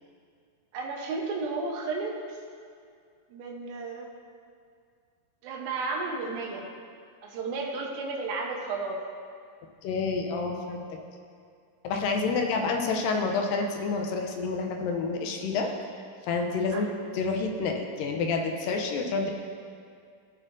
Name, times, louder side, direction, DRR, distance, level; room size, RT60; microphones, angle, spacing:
voice 1, 0.7-2.4 3.3-4.1 5.4-6.6 7.2-9.0 16.7-16.8, right 3 dB, 90° right, 0 dB, 2.8 m, -33 dB
voice 2, 9.8-11.0 11.8-15.7 16.2-16.9 17.1-19.3, left 4 dB, 80° left, 2 dB, 2.3 m, -28 dB
16.0 x 6.5 x 2.6 m, 2.3 s
omnidirectional pair, 4.1 m